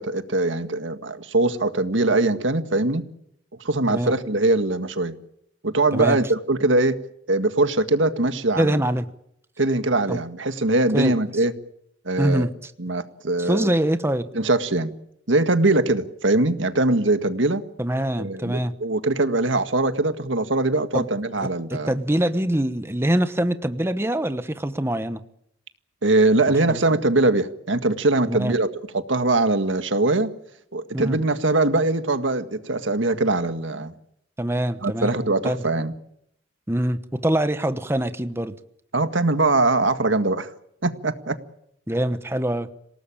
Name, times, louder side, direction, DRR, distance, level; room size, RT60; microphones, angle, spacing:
voice 1, 0.0-3.0 3.6-5.2 5.6-7.0 7.3-8.8 9.6-11.5 12.1-12.5 12.8-13.7 14.3-14.9 15.3-17.6 18.2-21.9 26.0-28.7 28.9-30.3 30.7-33.9 34.8-35.9 38.9-40.5 40.8-41.4, right 2 dB, 80° right, 9 dB, 1.8 m, -22 dB
voice 2, 8.6-9.1 10.1-10.2 10.9-11.1 12.2-12.7 13.4-14.3 17.8-18.7 20.9-21.1 21.4-25.2 26.7-26.8 28.3-28.5 30.9-31.2 34.4-35.1 35.4-35.6 36.7-38.5 41.9-42.7, right 1 dB, 15° right, 10 dB, 1.1 m, -24 dB
27.0 x 18.5 x 8.9 m, 0.75 s
head